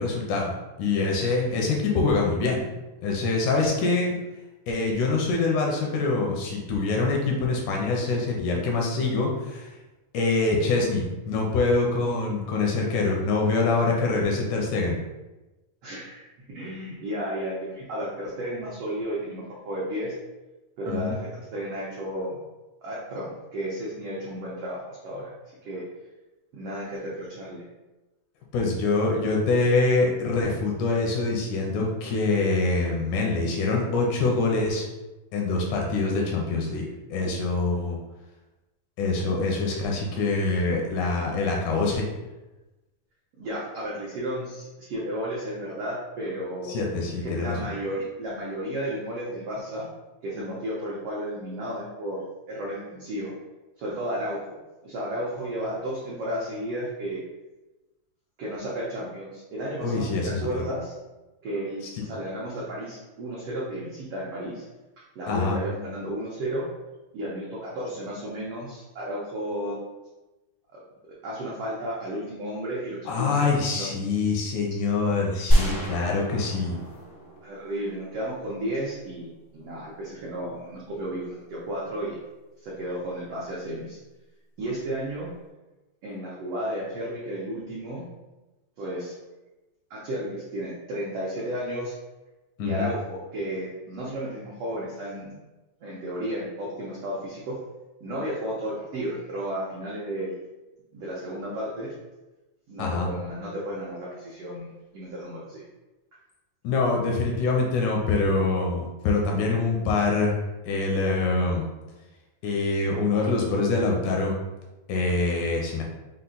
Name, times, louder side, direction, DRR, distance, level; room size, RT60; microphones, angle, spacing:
voice 1, 0.0-2.7 3.0-4.1 4.7-9.7 10.1-15.0 20.9-21.2 28.5-34.9 35.3-36.9 37.1-38.0 39.0-42.1 46.7-47.6 59.8-60.6 61.9-62.0 65.3-65.6 73.1-76.8 92.6-92.9 102.8-103.1 106.6-110.3 110.6-111.7 112.4-114.4 114.9-115.8, left 3 dB, 80° left, -1 dB, 2.0 m, -25 dB
voice 2, 15.8-20.1 20.8-22.4 22.8-25.3 25.6-25.8 26.5-27.6 43.4-46.8 47.2-49.9 50.2-53.3 53.8-57.2 58.4-61.0 61.4-64.6 65.1-66.7 67.1-69.8 70.7-70.8 71.1-73.9 77.4-82.2 82.6-84.0 84.6-85.3 86.0-88.1 88.8-89.2 89.9-91.9 92.6-95.3 95.8-97.6 98.0-100.4 100.9-101.9 102.7-105.6, right 1 dB, 80° right, -6 dB, 1.3 m, -33 dB
sound 1, 75.5-78.4, equal, 60° left, 0.5 m, -26 dB
5.6 x 2.1 x 3.8 m, 1.1 s
omnidirectional pair, 3.8 m